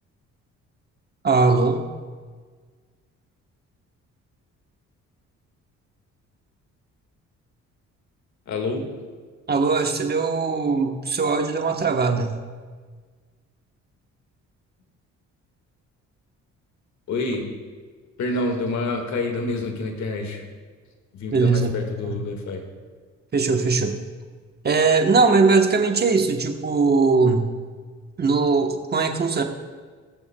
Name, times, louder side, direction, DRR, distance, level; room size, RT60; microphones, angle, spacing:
voice 1, 1.2-1.8 9.5-12.3 21.3-21.7 22.0-22.2 23.3-24.0 24.6-27.5 28.2-29.4, right 4 dB, 35° right, 5 dB, 1.0 m, -20 dB
voice 2, 8.5-8.9 17.1-17.4 18.2-20.4 21.1-22.6, left 2 dB, 65° left, 3 dB, 1.8 m, -27 dB
20.5 x 6.9 x 2.2 m, 1.5 s
cardioid pair, 90°, 30 cm